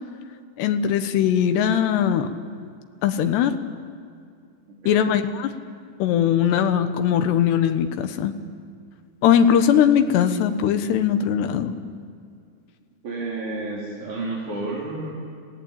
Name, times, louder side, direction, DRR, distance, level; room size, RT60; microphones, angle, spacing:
voice 1, 0.6-2.3 3.0-3.5 4.9-5.5 6.0-8.3 9.2-11.7, left 9 dB, 75° left, 8 dB, 3.2 m, -20 dB
voice 2, 13.0-15.1, right 2 dB, 45° right, -6 dB, 4.8 m, -30 dB
28.0 x 17.5 x 8.9 m, 2.3 s
omnidirectional pair, 5.2 m